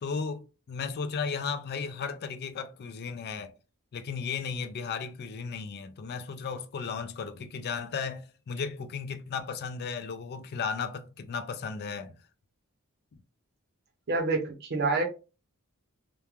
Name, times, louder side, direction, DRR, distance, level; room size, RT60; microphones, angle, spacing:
voice 1, 0.0-3.5 3.9-12.2, left 5 dB, 45° left, 0.3 m, -35 dB
voice 2, 14.1-15.0, right 3 dB, 50° right, 0.7 m, -27 dB
3.0 x 2.2 x 2.3 m
head